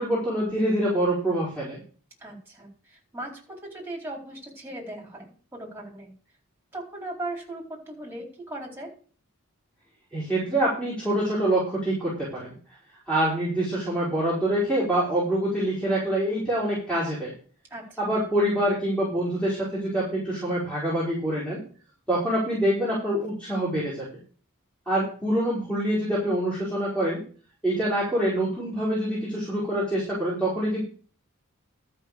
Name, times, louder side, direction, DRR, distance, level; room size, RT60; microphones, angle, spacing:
voice 1, 0.0-1.8 10.1-12.5 13.1-17.3 18.0-21.6 22.1-24.1 24.9-27.2 27.6-30.8, right 1 dB, 5° left, -8 dB, 5.3 m, -25 dB
voice 2, 2.2-6.1 6.7-8.9 17.7-18.0, right 1 dB, 10° right, -1 dB, 4.1 m, -38 dB
13.0 x 6.0 x 6.8 m, 0.41 s
head